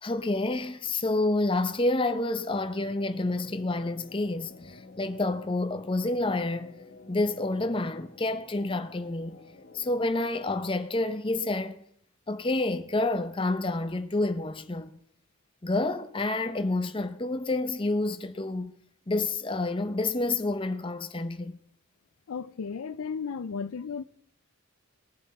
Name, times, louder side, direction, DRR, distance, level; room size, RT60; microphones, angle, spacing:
voice 1, 0.0-6.7 7.1-9.4 9.7-11.8 12.3-15.0 15.6-18.7 19.1-21.6, left 2 dB, 25° left, 0.6 m, -29 dB
sound 1, 2.8-10.7, left 2 dB, 50° left, 1.0 m, -51 dB
voice 2, 22.3-24.0, left 6 dB, 80° left, 0.4 m, -34 dB
20.0 x 7.4 x 4.2 m
head